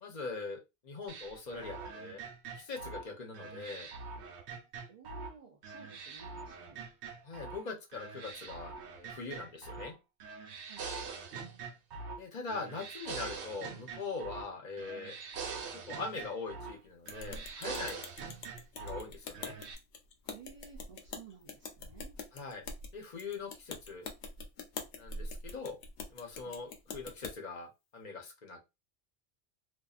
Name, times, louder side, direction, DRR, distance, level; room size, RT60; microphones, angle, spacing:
voice 1, 0.0-2.2 2.6-3.9 7.2-9.9 12.2-15.1 15.7-18.0 18.8-19.5 22.3-22.6 22.9-24.1 25.0-25.8 26.1-28.7, left 4 dB, 45° left, 2 dB, 0.8 m, -42 dB
sound 1, 1.1-5.3 5.6-7.6 7.9-9.9 10.2-12.2 12.5-14.5 14.8-16.8 17.1-19.0 19.3-19.7, right 5 dB, 85° right, 0.9 m, -44 dB
voice 2, 4.9-6.9 10.7-10.9 20.2-22.2 26.4-26.6, right 6 dB, 50° right, 0 dB, 0.4 m, -55 dB
sound 2, 17.1-27.3, left 3 dB, 85° left, 0.9 m, -44 dB
2.6 x 2.4 x 2.3 m, 0.24 s
omnidirectional pair, 1.1 m